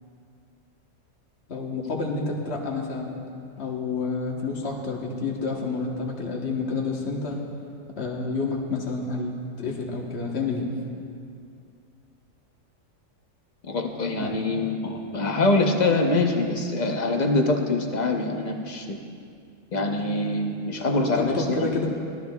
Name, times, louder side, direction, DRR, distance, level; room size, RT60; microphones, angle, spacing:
voice 1, 1.5-3.2 3.6-7.4 8.0-10.7 14.2-14.3 21.2-21.9, left 3 dB, 55° left, -1 dB, 1.5 m, -29 dB
voice 2, 13.7-19.0 19.7-21.7, left 2 dB, 35° left, 3 dB, 0.9 m, -24 dB
18.0 x 13.0 x 2.3 m, 2.4 s
omnidirectional pair, 1.4 m